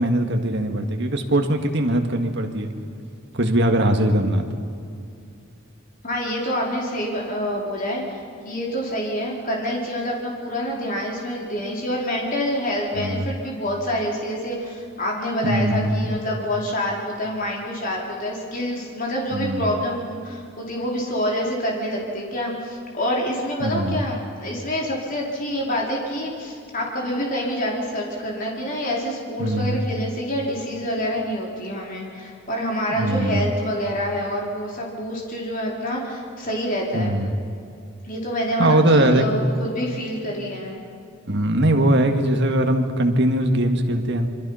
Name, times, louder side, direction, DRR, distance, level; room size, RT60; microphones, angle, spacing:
voice 1, 0.0-2.7 3.3-4.7 13.0-13.3 15.4-16.2 19.3-19.7 23.6-24.1 29.4-29.8 32.9-33.5 36.9-37.3 38.6-39.2 41.3-44.3, right 1 dB, 55° right, 4 dB, 1.9 m, -21 dB
voice 2, 6.0-37.2 38.0-40.8, equal, 40° left, -2 dB, 4.4 m, -27 dB
26.5 x 24.0 x 5.7 m, 2.4 s
head